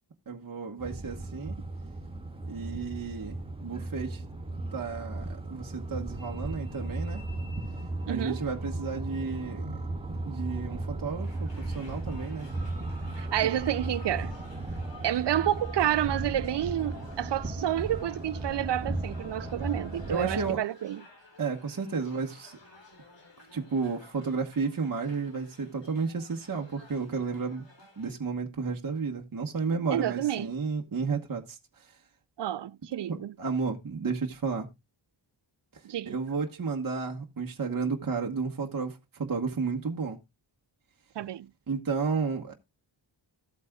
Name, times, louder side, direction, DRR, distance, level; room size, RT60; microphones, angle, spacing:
voice 1, 0.3-1.6 2.4-4.2 4.7-7.2 8.1-9.7 10.1-12.6 20.1-20.6 21.4-22.6 23.5-27.6 28.0-31.9 33.1-34.7 36.0-40.2 41.7-42.5, right 5 dB, 45° right, 1.3 m, -32 dB
sound 1, 0.8-20.6, right 2 dB, 10° right, 2.5 m, -36 dB
voice 2, 8.1-8.5 13.2-14.3 15.0-21.0 29.9-30.5 32.4-33.3 35.8-36.2 41.2-41.5, right 12 dB, 60° right, 0.5 m, -29 dB
sound 2, 11.1-28.1, left 3 dB, 65° left, 3.3 m, -55 dB
14.5 x 8.3 x 2.3 m
wide cardioid pair, 125°, 48 cm